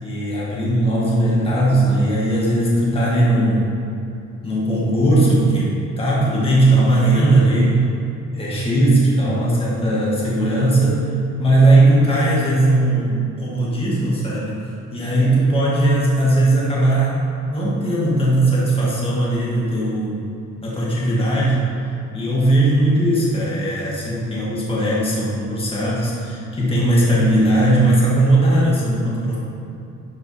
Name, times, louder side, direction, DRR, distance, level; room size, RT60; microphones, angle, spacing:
voice 1, 0.0-3.7 4.4-7.8 8.3-11.0 11.4-14.6 14.9-17.2 17.5-20.2 20.6-29.4, right 1 dB, 15° left, -6 dB, 1.7 m, -18 dB
11.0 x 4.7 x 4.2 m, 2.7 s
cardioid pair, 175°, 32 cm